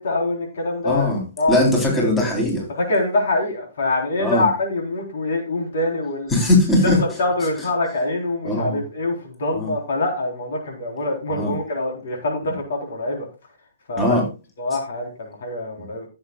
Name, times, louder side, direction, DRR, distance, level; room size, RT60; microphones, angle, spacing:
voice 1, 0.0-1.1 1.4-1.7 2.7-6.3 6.8-13.3 13.9-14.2 14.6-16.1, left 2 dB, 60° left, 2 dB, 4.0 m, -24 dB
voice 2, 0.8-1.2 1.5-2.7 4.2-4.5 6.3-7.0 8.4-8.8 9.5-9.7 11.3-11.5 14.0-14.2, left 1 dB, 10° left, -1 dB, 3.9 m, -19 dB
15.5 x 8.0 x 2.4 m, 0.30 s
figure-of-eight pair, 125°, 0 cm